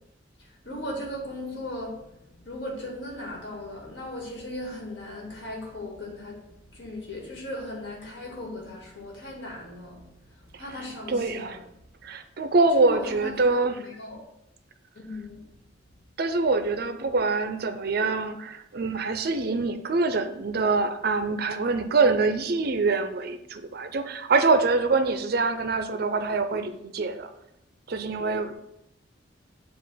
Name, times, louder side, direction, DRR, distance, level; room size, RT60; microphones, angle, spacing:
voice 1, 0.4-11.5 12.7-14.3 15.0-15.5, left 1 dB, 65° left, 1.8 m, -37 dB
voice 2, 11.1-11.6 12.0-13.8 16.2-27.3 27.9-28.5, right 3 dB, 55° right, 0.5 m, -25 dB
7.3 x 2.4 x 5.6 m
head